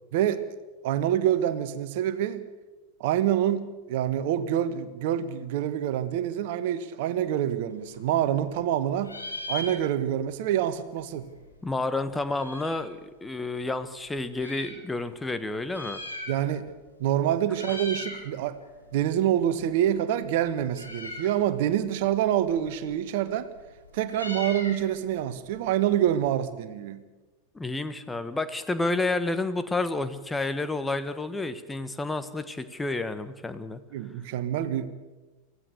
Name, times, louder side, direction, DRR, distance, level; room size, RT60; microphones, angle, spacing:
voice 1, 0.1-0.4 0.8-2.5 3.0-9.2 9.5-11.3 16.3-16.7 17.0-18.6 18.9-23.5 23.9-27.0 33.9-34.9, right 11 dB, 50° right, 13 dB, 1.4 m, -26 dB
Meow, 7.7-8.7 9.0-10.3 10.6-10.7 10.8-12.9 13.6-14.8 15.5-16.7 17.0-17.2 17.5-18.3 18.6-26.5, left 2 dB, 85° left, 4.1 m, -41 dB
voice 2, 11.6-16.0 27.5-33.8, left 2 dB, 10° left, 11 dB, 1.4 m, -30 dB
24.5 x 16.0 x 6.8 m, 1.2 s
figure-of-eight pair, 90°, 0 cm